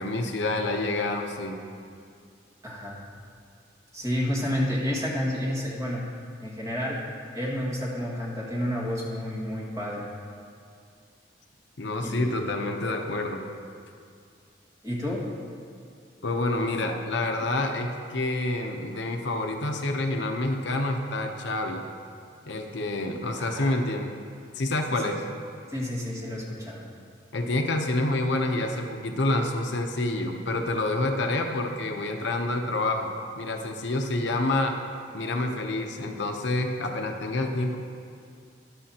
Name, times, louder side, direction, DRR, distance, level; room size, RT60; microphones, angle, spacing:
voice 1, 0.0-1.6 11.8-13.4 16.2-21.8 22.5-24.1 24.5-25.2 27.3-33.1 33.4-34.8 35.1-37.8, left 2 dB, 65° left, 3 dB, 0.7 m, -28 dB
voice 2, 2.6-3.0 3.9-6.0 6.4-7.0 7.3-10.1 12.0-12.3 14.8-15.2 23.4-23.8 25.7-26.8, equal, 15° right, -6 dB, 1.9 m, -30 dB
13.5 x 10.5 x 2.9 m, 2.3 s
head